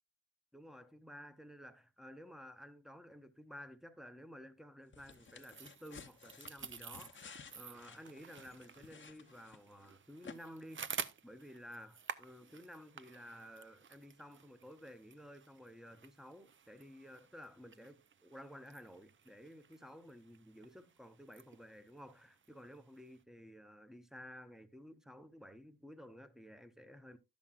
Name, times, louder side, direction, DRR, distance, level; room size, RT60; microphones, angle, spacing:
voice 1, 0.5-27.2, equal, ahead, 0.8 m, -54 dB
sound 1, 4.9-9.9 10.2-10.4, left 5 dB, 30° left, 0.7 m, -55 dB
sound 2, 5.0-23.2, right 7 dB, 30° right, 0.5 m, -52 dB
11.0 x 7.2 x 2.4 m
cardioid pair, 90°, 39 cm